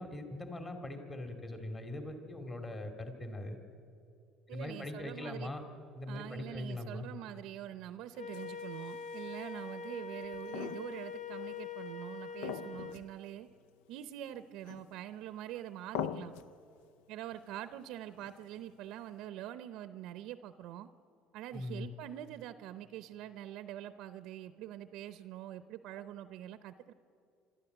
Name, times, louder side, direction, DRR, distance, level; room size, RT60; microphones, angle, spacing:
voice 1, 0.0-3.6 4.5-5.6 6.0-7.1 21.5-21.9, left 1 dB, 20° left, 5 dB, 2.3 m, -41 dB
voice 2, 4.5-5.5 6.1-13.5 13.9-16.3 17.1-20.9 21.3-26.9, right 12 dB, 70° right, 12 dB, 0.6 m, -45 dB
Wind instrument woodwind instrument, 8.2-13.0, left 4 dB, 60° left, 1.0 m, -43 dB
sound 1, 8.3-9.4 10.2-11.2 11.5-11.6 12.4-13.2 13.5-13.6 14.6-15.2 15.9-16.6 18.2-18.6, left 8 dB, 85° left, 0.6 m, -42 dB
26.0 x 13.0 x 8.0 m, 2.5 s
supercardioid pair, 90°, 0 cm